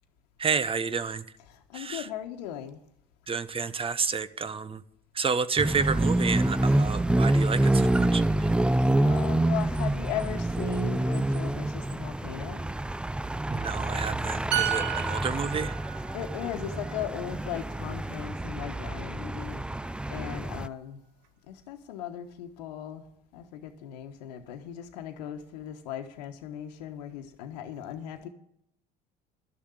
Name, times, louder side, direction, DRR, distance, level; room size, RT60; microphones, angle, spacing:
voice 1, 0.4-1.2 1.7-2.1 3.3-4.8 5.1-8.5 13.5-15.7, right 5 dB, 25° right, 0.7 m, -30 dB
voice 2, 1.7-2.8 9.0-12.6 16.1-19.6 20.1-21.0 21.5-23.0 23.3-28.3, left 10 dB, 85° left, 1.2 m, -37 dB
sound 1, 5.6-20.7, right 1 dB, 5° right, 0.4 m, -27 dB
sound 2, 14.5-18.1 18.4-18.7, right 11 dB, 80° right, 1.1 m, -34 dB
11.5 x 6.9 x 9.2 m
hypercardioid pair, 80°, 20 cm